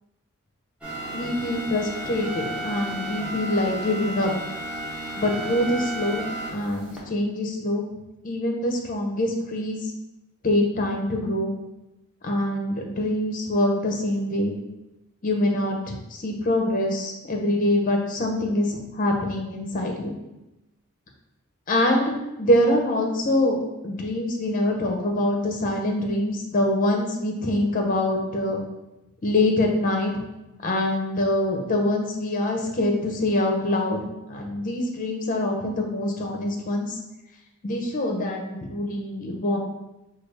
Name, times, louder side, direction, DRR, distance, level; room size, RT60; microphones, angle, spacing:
sound 1, 0.8-7.0, right 1 dB, 5° right, 0.7 m, -33 dB
voice 1, 1.1-4.3 5.2-6.2 6.5-7.9 8.2-9.9 10.4-11.5 12.2-14.5 15.2-20.2 21.7-28.6 29.2-30.1 30.6-34.0 34.3-37.0 37.6-39.6, left 1 dB, 40° left, 1 dB, 0.6 m, -24 dB
4.5 x 2.3 x 3.3 m, 0.97 s
head